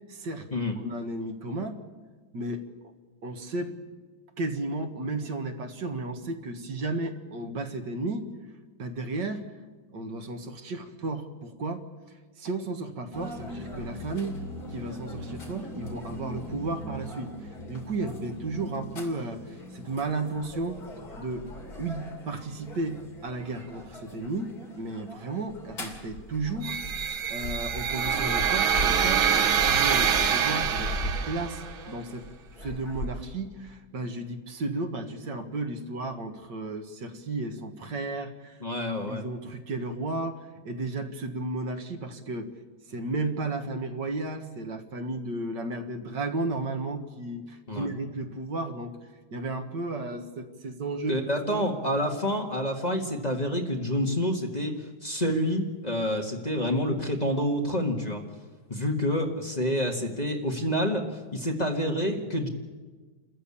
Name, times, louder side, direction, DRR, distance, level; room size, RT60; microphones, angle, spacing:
voice 1, 0.1-0.5 0.8-1.8 2.3-2.6 3.2-3.7 4.4-8.3 8.8-9.4 9.9-11.8 12.4-14.4 14.7-20.8 21.1-21.5 21.8-26.8 27.0-32.3 32.6-38.6 39.1-42.5 42.9-49.0 49.3-51.2 51.5-51.7, right 2 dB, 60° right, 5 dB, 2.2 m, -33 dB
sound 1, 13.1-33.1, left 1 dB, 50° left, 3.3 m, -39 dB
sound 2, 26.6-31.7, right 8 dB, 85° right, 1.9 m, -25 dB
voice 2, 38.6-39.2 47.7-47.9 51.1-58.2 58.7-61.0 61.3-62.5, equal, 20° left, 1 dB, 1.6 m, -28 dB
28.0 x 14.5 x 8.6 m, 1.4 s
omnidirectional pair, 2.2 m